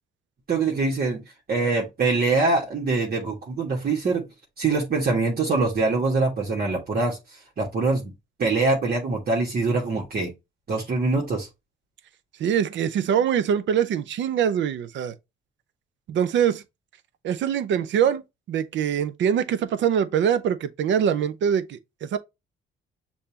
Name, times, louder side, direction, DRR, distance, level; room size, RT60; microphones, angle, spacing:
voice 1, 0.5-1.2 1.5-4.3 4.6-8.1 8.4-10.3 10.7-11.5, right 3 dB, 50° right, 1.6 m, -24 dB
voice 2, 12.4-15.1 16.1-16.6 17.2-18.2 18.5-22.2, right 8 dB, 70° right, 0.6 m, -23 dB
6.6 x 2.8 x 2.8 m
cardioid pair, 90°, 20 cm